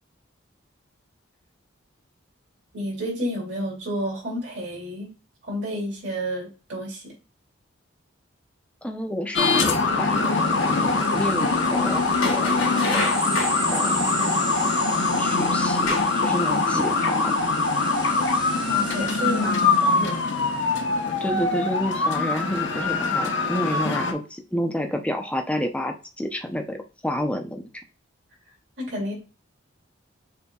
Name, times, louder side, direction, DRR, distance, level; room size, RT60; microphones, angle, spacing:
voice 1, 2.7-5.1 5.4-7.1 18.7-20.3 28.8-29.1, equal, 60° right, -3 dB, 2.5 m, -31 dB
voice 2, 8.8-13.1 13.7-14.3 15.2-17.4 21.2-26.8 27.0-27.7, left 1 dB, 5° left, 4 dB, 0.5 m, -29 dB
sound 1, 9.3-24.1, left 3 dB, 60° left, 0.7 m, -23 dB
sound 2, 9.8-20.9, right 3 dB, 25° right, 0.9 m, -37 dB
sound 3, 12.1-13.6 14.7-14.9 15.6-16.3 16.7-16.8, left 3 dB, 75° left, 1.3 m, -29 dB
6.8 x 2.7 x 2.3 m, 0.33 s
head